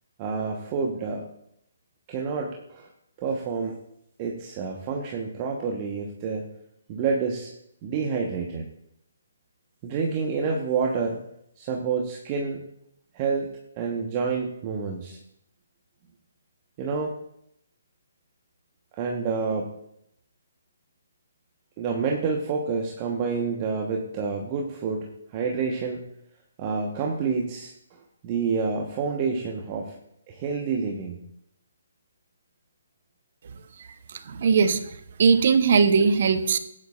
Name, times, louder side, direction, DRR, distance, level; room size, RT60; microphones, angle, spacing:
voice 1, 0.2-1.3 2.1-2.9 3.2-3.8 4.2-6.5 6.9-7.5 7.8-8.6 9.8-11.2 11.6-12.6 13.1-15.2 16.8-17.2 19.0-19.7 21.8-26.0 26.6-28.0 28.2-29.9 30.3-31.2, right 5 dB, 30° right, 0 dB, 1.1 m, -28 dB
voice 2, 34.1-34.8 35.2-36.6, right 5 dB, 45° right, 10 dB, 0.9 m, -19 dB
15.5 x 9.9 x 2.5 m, 0.75 s
figure-of-eight pair, 140°, 0 cm